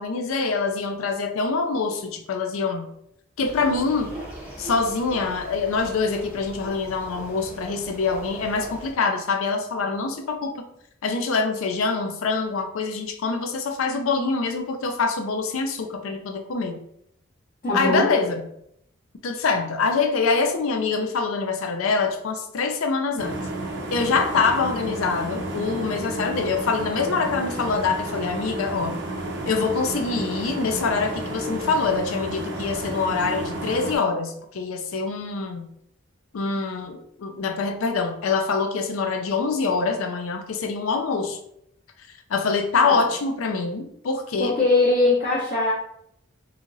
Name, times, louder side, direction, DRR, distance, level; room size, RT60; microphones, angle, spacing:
voice 1, 0.0-2.9 3.4-4.2 4.6-10.5 11.0-16.8 17.7-18.5 19.2-23.4 23.9-29.0 29.5-35.7 36.3-41.4 42.3-44.6, left 4 dB, 80° left, 5 dB, 0.4 m, -25 dB
sound 1, 3.4-8.9, right 1 dB, 10° right, 0.6 m, -40 dB
voice 2, 17.6-18.1 42.8-43.0 44.4-45.7, left 2 dB, 40° left, -8 dB, 0.6 m, -21 dB
sound 2, 23.2-34.0, right 2 dB, 55° right, 0.4 m, -32 dB
2.9 x 2.4 x 2.6 m, 0.73 s
head